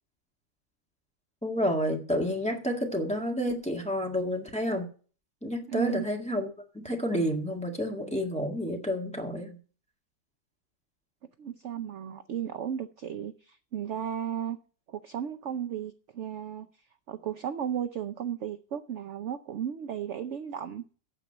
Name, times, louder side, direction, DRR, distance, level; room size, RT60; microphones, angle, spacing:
voice 1, 1.4-4.8 5.4-9.5, equal, 5° left, 1.6 m, -30 dB
voice 2, 5.7-6.1 11.4-14.6 14.9-16.7 17.1-20.8, right 9 dB, 60° right, 0.8 m, -34 dB
9.1 x 7.6 x 7.8 m
omnidirectional pair, 1.8 m